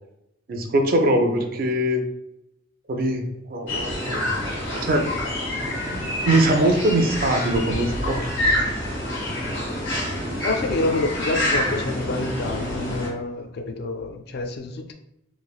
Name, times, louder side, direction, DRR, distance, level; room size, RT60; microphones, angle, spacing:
voice 1, 0.5-2.0 2.9-4.4 4.7-5.1 5.9-6.0 6.2-8.3, right 1 dB, 50° right, 4 dB, 0.4 m, -22 dB
sound 1, 3.7-13.1, left 1 dB, 85° left, 1.4 m, -27 dB
voice 2, 10.4-14.9, left 2 dB, 55° left, 5 dB, 0.3 m, -27 dB
3.1 x 2.5 x 2.3 m, 0.84 s
head